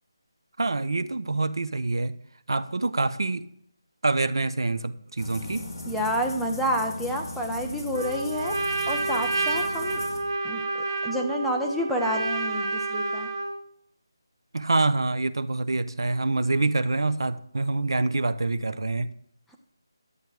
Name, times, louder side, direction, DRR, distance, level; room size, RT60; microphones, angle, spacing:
voice 1, 0.6-2.2 2.5-3.5 4.0-5.7 14.5-19.1, right 3 dB, 70° right, 14 dB, 0.8 m, -26 dB
sound 1, 5.2-10.2, left 1 dB, 20° left, 3.7 m, -38 dB
voice 2, 5.9-8.6 8.9-10.0 10.4-10.6 11.0-13.3, equal, ahead, -1 dB, 0.4 m, -29 dB
Trumpet, 7.9-13.6, right 3 dB, 45° right, 1.9 m, -29 dB
11.5 x 8.5 x 4.7 m, 0.67 s
figure-of-eight pair, 180°, 2 cm